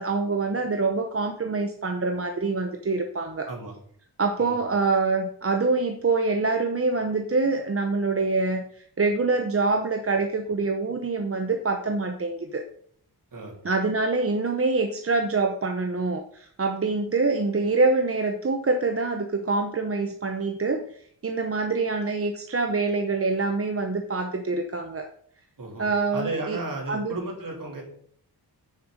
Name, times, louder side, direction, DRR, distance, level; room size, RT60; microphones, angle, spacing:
voice 1, 0.0-3.5 4.2-12.6 13.6-20.8 21.2-25.1 25.8-26.6 26.9-27.1, right 3 dB, 35° right, 5 dB, 0.8 m, -25 dB
voice 2, 3.4-3.8 4.4-4.6 13.3-13.6 25.6-27.8, right 2 dB, 55° right, 0 dB, 3.3 m, -34 dB
9.4 x 6.7 x 5.1 m, 0.62 s
wide cardioid pair, 125°, 40 cm